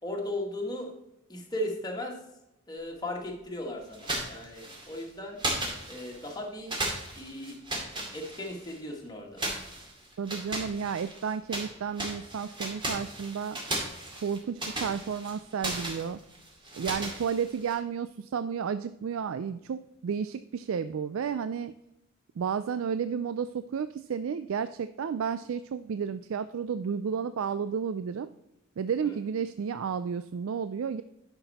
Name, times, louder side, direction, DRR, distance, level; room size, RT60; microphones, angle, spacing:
voice 1, 0.0-0.9 1.3-2.2 2.7-5.4 5.9-6.7 7.1-7.6 8.1-9.4 29.0-29.2, left 1 dB, 20° left, 0 dB, 1.6 m, -36 dB
sound 1, 3.9-5.0 5.4-6.4 6.7-8.8 9.4-11.7 12.0-17.7, right 1 dB, 20° right, 2.2 m, -36 dB
voice 2, 10.2-13.6 14.2-16.2 16.7-21.7 22.4-28.3 28.8-31.0, right 7 dB, 70° right, 13 dB, 0.3 m, -32 dB
11.0 x 5.9 x 4.1 m, 0.90 s
head